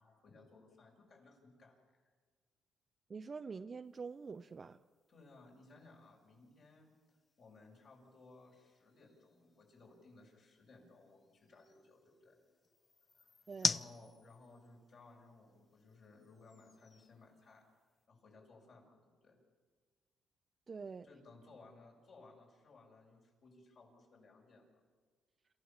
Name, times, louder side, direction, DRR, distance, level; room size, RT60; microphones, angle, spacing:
voice 1, 0.0-1.7 5.1-6.9 7.4-12.4 13.1-13.3 13.6-17.6 18.1-19.4 21.0-24.7, left 3 dB, 60° left, -1 dB, 6.4 m, -60 dB
voice 2, 3.1-4.8 13.5-13.8 20.7-21.1, right 5 dB, 35° right, 9 dB, 0.5 m, -46 dB
sound 1, 3.8-18.1, left 4 dB, 35° left, 0.5 m, -47 dB
27.5 x 14.5 x 7.2 m, 1.5 s
cardioid pair, 90°, 0 cm